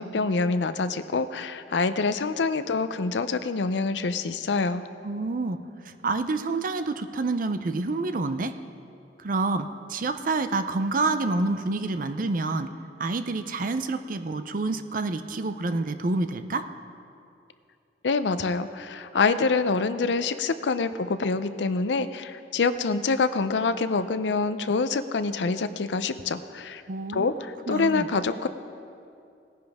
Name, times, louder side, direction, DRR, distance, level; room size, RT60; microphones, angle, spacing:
voice 1, 0.0-4.8 18.0-26.8 27.1-28.5, left 4 dB, 80° left, 12 dB, 0.5 m, -26 dB
voice 2, 5.0-5.6 6.0-8.5 9.2-12.7 13.0-16.6 26.9-27.3 27.7-28.1, right 3 dB, 50° right, 10 dB, 0.6 m, -28 dB
18.0 x 10.0 x 3.5 m, 2.5 s
head